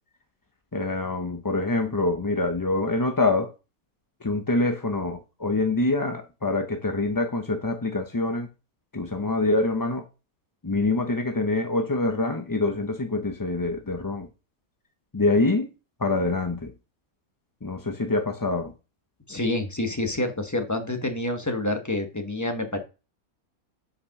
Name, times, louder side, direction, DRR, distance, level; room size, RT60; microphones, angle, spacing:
voice 1, 0.7-3.5 4.2-8.5 8.9-10.0 10.6-14.3 15.1-15.7 16.0-16.7 17.6-18.7, left 2 dB, 30° left, 0.3 m, -25 dB
voice 2, 19.3-22.8, left 1 dB, 15° left, 1.1 m, -28 dB
5.8 x 4.9 x 5.9 m
omnidirectional pair, 1.5 m